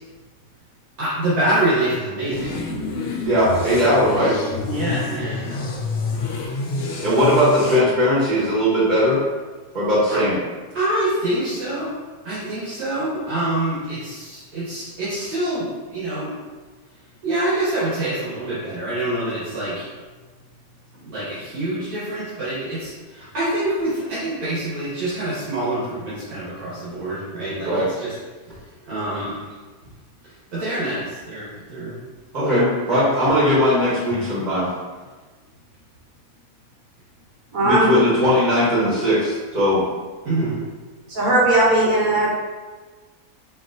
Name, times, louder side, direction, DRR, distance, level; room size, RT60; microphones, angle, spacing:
voice 1, 1.0-2.6 4.7-5.4 10.1-10.2 10.7-12.0 12.2-16.3 17.2-19.9 21.0-28.1 28.5-28.6 28.9-29.4 30.2-31.9 40.2-40.6, right 1 dB, 90° right, -11 dB, 2.0 m, -26 dB
sound 1, 2.3-7.8, left 3 dB, 60° left, 0.8 m, -28 dB
voice 2, 3.2-4.3 7.0-9.2 9.7-10.4 27.6-27.9 29.1-29.3 32.3-34.7 37.6-39.8, equal, 35° right, -8 dB, 1.1 m, -19 dB
voice 3, 37.5-37.9 41.1-42.3, right 2 dB, 70° right, -4 dB, 1.4 m, -17 dB
5.2 x 2.9 x 2.6 m, 1.3 s
omnidirectional pair, 1.5 m